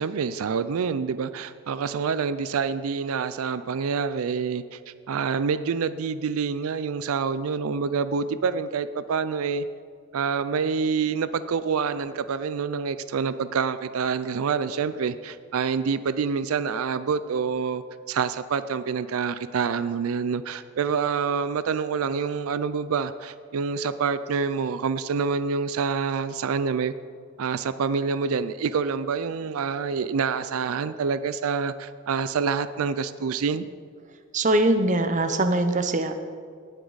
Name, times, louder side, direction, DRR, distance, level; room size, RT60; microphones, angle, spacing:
voice 1, 0.0-9.6 10.1-26.9 27.4-33.6, right 5 dB, 85° right, 13 dB, 0.4 m, -27 dB
voice 2, 34.3-36.1, right 1 dB, 35° right, 9 dB, 0.6 m, -22 dB
18.5 x 8.2 x 4.0 m, 2.1 s
head